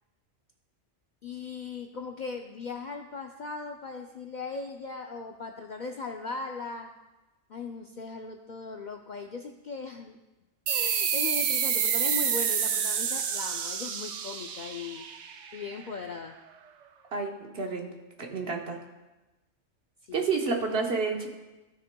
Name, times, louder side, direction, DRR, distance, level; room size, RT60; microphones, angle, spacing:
voice 1, 1.2-6.9 7.5-10.2 10.7-15.1 15.5-16.4 20.1-20.3 20.7-20.8, left 4 dB, 60° left, 3 dB, 0.5 m, -38 dB
sound 1, 10.7-15.8, right 7 dB, 85° right, 1.0 m, -28 dB
voice 2, 17.1-17.9 18.2-18.8 20.1-21.3, right 4 dB, 60° right, 2 dB, 1.2 m, -29 dB
15.0 x 6.4 x 2.2 m, 1.1 s
omnidirectional pair, 1.2 m